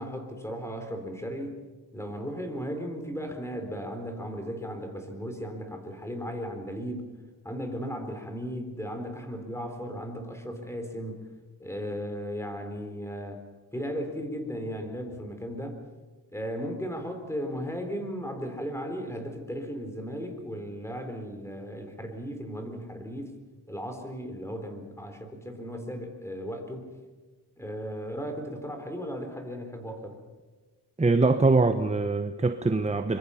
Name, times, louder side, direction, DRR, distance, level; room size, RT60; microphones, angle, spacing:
voice 1, 0.0-1.6 1.9-7.1 7.4-11.3 11.6-13.4 13.7-15.8 16.3-23.4 23.7-26.9 27.6-30.2, equal, 5° left, 3.9 m, -36 dB
voice 2, 31.0-33.2, right 3 dB, 15° right, 1.0 m, -23 dB
25.0 x 23.0 x 5.8 m
cardioid pair, 100°, 42 cm